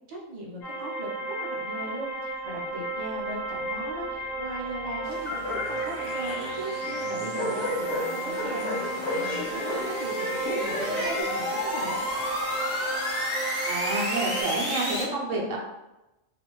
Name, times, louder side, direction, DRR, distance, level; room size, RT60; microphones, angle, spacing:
voice 1, 0.1-12.1, right 2 dB, 40° right, -3 dB, 0.6 m, -38 dB
sound 1, 0.6-14.4, right 1 dB, 75° left, 1.4 m, -33 dB
sound 2, 3.7-15.0, equal, 15° left, 0.7 m, -34 dB
sound 3, 5.0-11.2, left 2 dB, 60° left, 1.3 m, -34 dB
voice 2, 13.6-15.6, right 2 dB, 70° right, -2 dB, 1.0 m, -29 dB
2.8 x 2.5 x 3.0 m, 0.96 s
omnidirectional pair, 1.4 m